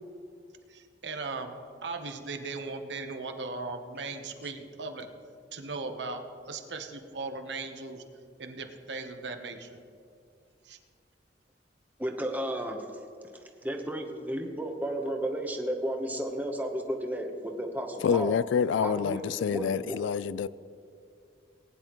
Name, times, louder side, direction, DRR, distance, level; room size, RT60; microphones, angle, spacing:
voice 1, 0.7-5.1 5.5-8.0 8.4-9.7 10.6-10.8, right 3 dB, 70° right, 1.0 m, -38 dB
voice 2, 12.0-12.8 13.6-18.3 18.8-19.2 19.5-19.9, right 1 dB, 10° right, 0.9 m, -33 dB
voice 3, 18.0-20.5, left 7 dB, 85° left, 0.3 m, -27 dB
19.5 x 9.9 x 3.1 m
head